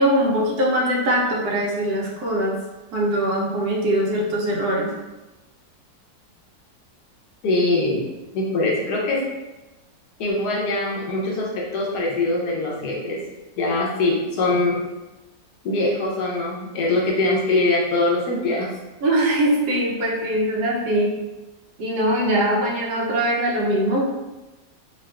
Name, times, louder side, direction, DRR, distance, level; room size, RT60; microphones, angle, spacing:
voice 1, 0.0-2.6 2.9-4.9 19.0-21.2 21.8-24.3, right 1 dB, 75° right, -2 dB, 1.1 m, -22 dB
voice 2, 7.4-8.0 8.3-9.2 10.2-13.2 13.6-14.8 15.6-18.7, left 2 dB, 80° left, -3 dB, 1.3 m, -22 dB
3.6 x 2.4 x 2.3 m, 1.1 s
omnidirectional pair, 1.7 m